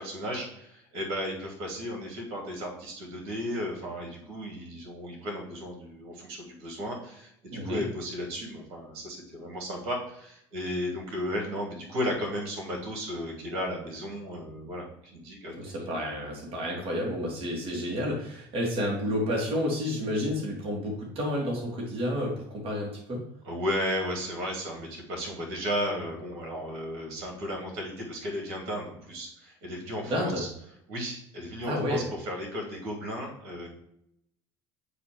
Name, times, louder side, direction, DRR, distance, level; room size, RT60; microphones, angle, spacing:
voice 1, 0.0-15.5 23.4-30.5 30.9-33.7, equal, 75° right, 0 dB, 2.5 m, -34 dB
voice 2, 7.5-7.8 15.6-23.2 30.1-30.4 31.7-32.1, equal, 50° right, -2 dB, 2.5 m, -30 dB
8.1 x 2.9 x 5.1 m, 0.75 s
supercardioid pair, 80°, 12 cm